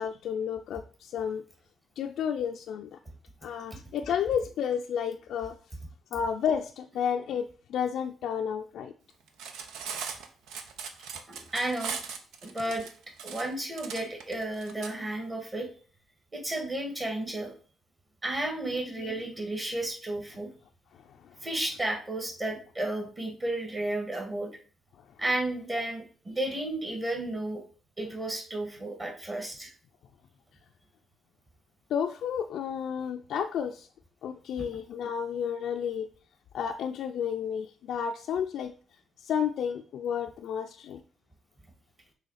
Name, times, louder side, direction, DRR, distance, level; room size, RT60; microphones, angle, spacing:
voice 1, 0.0-1.4 2.0-3.0 3.4-5.6 6.1-8.9 18.7-19.2 20.9-21.5 31.9-33.9 34.2-36.1 36.5-38.7 39.2-41.0, left 8 dB, 75° left, 0.4 m, -32 dB
Cutlery silverware, 9.3-14.9, right 6 dB, 90° right, 0.8 m, -39 dB
voice 2, 11.3-12.0 12.4-12.8 13.2-15.7 16.3-17.5 18.2-20.5 21.4-24.5 25.2-27.6 28.0-29.7 34.6-34.7, right 1 dB, 30° right, 1.8 m, -33 dB
6.2 x 3.2 x 5.6 m
cardioid pair, 90°, 0 cm